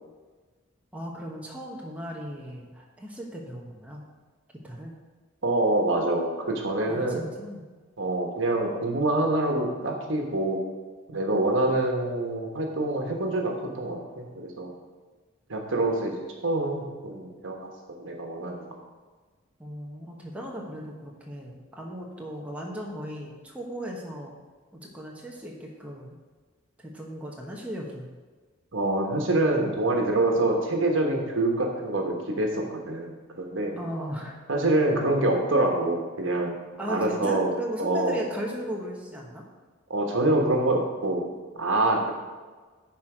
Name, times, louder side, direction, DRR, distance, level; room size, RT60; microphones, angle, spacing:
voice 1, 0.9-4.0 4.6-4.9 6.9-7.7 19.6-24.3 24.7-26.2 26.8-28.1 33.8-34.4 36.8-39.4, equal, 5° right, -2 dB, 1.0 m, -37 dB
voice 2, 5.4-7.3 8.0-10.6 11.1-14.7 15.5-18.8 28.7-33.8 34.5-36.6 36.9-38.3 39.9-41.3 41.6-42.1, right 2 dB, 70° right, 1 dB, 1.3 m, -26 dB
10.5 x 4.4 x 5.0 m, 1.4 s
head